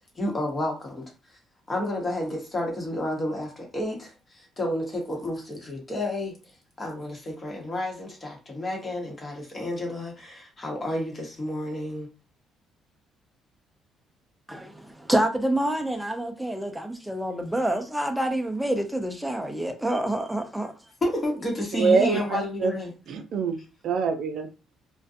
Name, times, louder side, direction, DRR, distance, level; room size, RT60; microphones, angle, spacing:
voice 1, 0.2-1.0 1.7-6.3 6.8-12.1 21.0-22.9, left 1 dB, 30° left, 0.9 m, -30 dB
voice 2, 14.5-20.7, right 1 dB, 5° right, 0.5 m, -27 dB
voice 3, 21.8-22.7 23.1-23.6 23.8-24.5, right 5 dB, 65° right, 0.5 m, -24 dB
2.4 x 2.2 x 2.6 m
cardioid pair, 95°, 0 cm